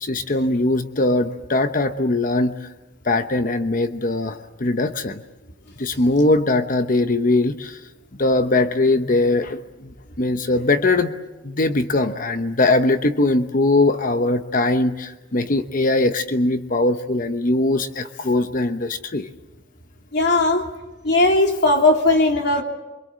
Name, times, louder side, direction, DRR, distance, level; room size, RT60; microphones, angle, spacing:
voice 1, 0.0-2.7 3.0-5.2 5.8-7.8 8.2-11.1 11.4-19.3, left 2 dB, 45° left, 9 dB, 1.0 m, -21 dB
voice 2, 20.1-20.7 21.0-22.6, left 2 dB, 60° left, 2 dB, 3.1 m, -17 dB
25.0 x 23.0 x 7.6 m, 1.1 s
head